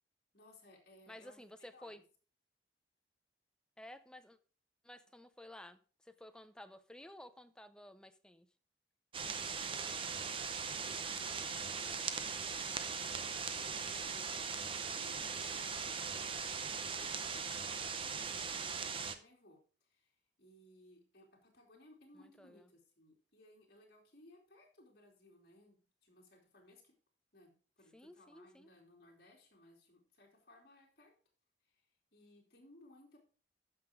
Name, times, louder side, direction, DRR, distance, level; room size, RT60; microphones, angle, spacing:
voice 1, 0.3-1.4 1.7-2.0 9.2-26.9 27.3-31.1 31.6-31.9 32.1-33.2, left 1 dB, 55° left, -2 dB, 3.0 m, -62 dB
voice 2, 1.1-2.0 3.8-4.4 4.8-8.5 14.6-15.0 22.1-22.6 27.9-28.7, left 1 dB, 5° left, 10 dB, 0.6 m, -54 dB
sound 1, 9.1-19.2, right 5 dB, 30° right, 0.8 m, -40 dB
13.5 x 5.9 x 3.7 m, 0.38 s
head